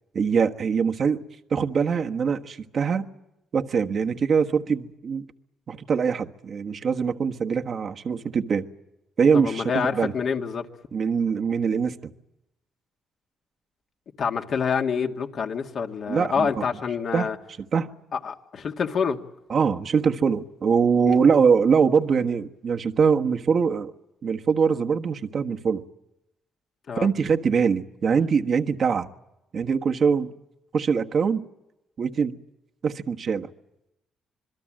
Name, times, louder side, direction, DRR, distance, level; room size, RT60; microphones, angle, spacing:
voice 1, 0.1-1.2 1.5-3.1 3.5-5.2 5.7-8.7 9.2-10.1 10.9-12.1 16.1-16.6 17.1-17.3 17.7-17.9 19.5-23.9 24.2-25.8 27.0-29.1 29.5-30.3 30.7-31.5 32.0-32.4 32.8-33.5, right 6 dB, 50° right, 1.3 m, -23 dB
voice 2, 9.3-10.7 14.2-17.4 18.1-19.2 21.0-21.2 26.9-27.1, left 6 dB, 55° left, 2.2 m, -27 dB
26.5 x 22.0 x 7.6 m
cardioid pair, 90°, 0 cm